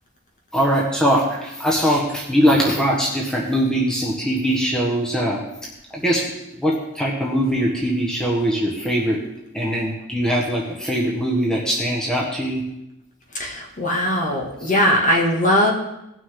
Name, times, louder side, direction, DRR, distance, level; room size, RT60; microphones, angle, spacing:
voice 1, 0.5-5.4 5.9-6.2 6.6-9.2 9.5-12.6, equal, 5° left, -3 dB, 1.4 m, -21 dB
voice 2, 13.3-15.7, left 1 dB, 35° left, -1 dB, 2.0 m, -20 dB
18.0 x 6.2 x 3.8 m, 0.89 s
head